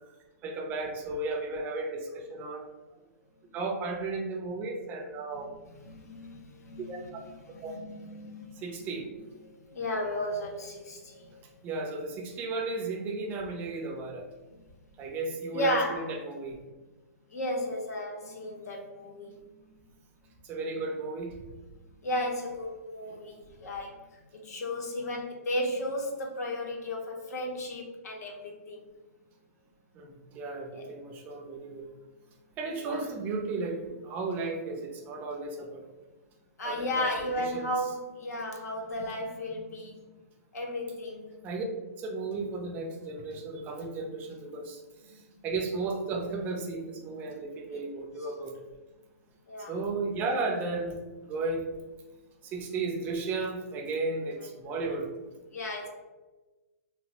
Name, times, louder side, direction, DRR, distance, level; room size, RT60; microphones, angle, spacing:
voice 1, 0.4-2.7 3.5-5.5 6.8-7.0 7.6-7.7 8.6-9.1 11.6-14.3 15.0-16.6 20.4-21.4 29.9-31.9 32.6-35.8 36.6-37.1 37.4-37.7 41.4-41.7 42.0-48.5 49.7-51.0 51.2-51.7 52.4-55.1, right 3 dB, 20° right, 2 dB, 0.4 m, -34 dB
voice 2, 5.3-8.7 9.5-11.4 15.5-16.2 17.3-19.6 22.0-24.0 24.3-28.8 30.7-30.9 32.8-33.0 36.6-40.0 40.5-41.3 45.0-45.2 47.7-47.8 49.5-49.7 54.3-54.5 55.5-55.9, left 1 dB, 75° left, 1 dB, 0.7 m, -34 dB
3.0 x 2.0 x 2.8 m, 1.2 s
hypercardioid pair, 150°, 9 cm